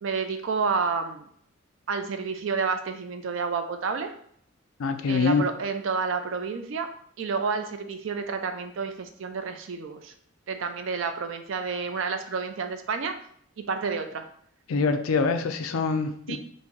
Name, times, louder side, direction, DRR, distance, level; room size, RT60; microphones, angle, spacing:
voice 1, 0.0-1.3 1.9-4.2 5.1-6.9 7.2-10.1 10.5-13.2 13.6-14.3 16.3-16.4, right 5 dB, 65° right, 7 dB, 0.4 m, -30 dB
voice 2, 4.8-5.5 14.7-16.4, left 4 dB, 80° left, 8 dB, 0.4 m, -25 dB
3.0 x 2.6 x 3.8 m, 0.64 s
head